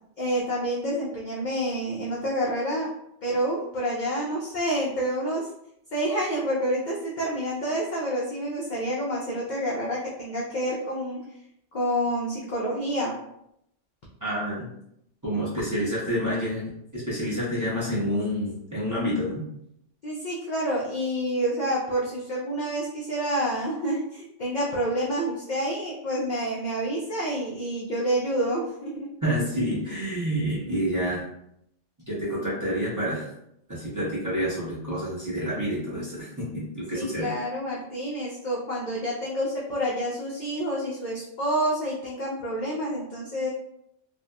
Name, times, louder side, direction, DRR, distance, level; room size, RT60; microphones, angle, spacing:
voice 1, 0.2-2.9 3.2-5.5 5.9-11.2 11.7-13.2 20.0-29.1 36.9-43.5, equal, 60° left, -4 dB, 0.5 m, -28 dB
voice 2, 14.2-14.7 15.2-19.4 29.2-31.3 32.1-33.3 33.7-37.3, equal, 20° right, -7 dB, 0.6 m, -28 dB
2.6 x 2.1 x 2.2 m, 0.77 s
omnidirectional pair, 1.3 m